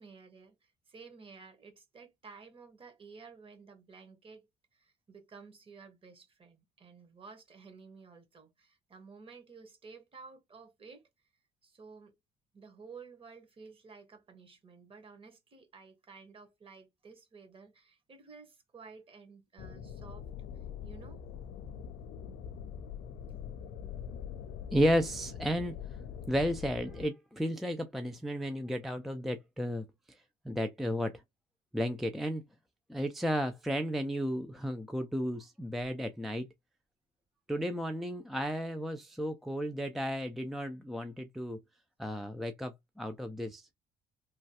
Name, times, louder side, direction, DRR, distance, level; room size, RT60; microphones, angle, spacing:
voice 1, 0.0-4.5 4.7-11.1 11.6-12.1 12.5-20.3 20.8-21.2, right 4 dB, 30° right, 1.2 m, -53 dB
sound 1, 19.6-27.1, left 8 dB, 75° left, 0.4 m, -43 dB
voice 2, 24.7-25.7 26.3-29.9 30.5-31.2 31.7-32.4 32.9-36.5 37.5-41.6 42.0-43.7, equal, ahead, 0.3 m, -33 dB
3.0 x 2.3 x 2.7 m
cardioid pair, 110°, 17 cm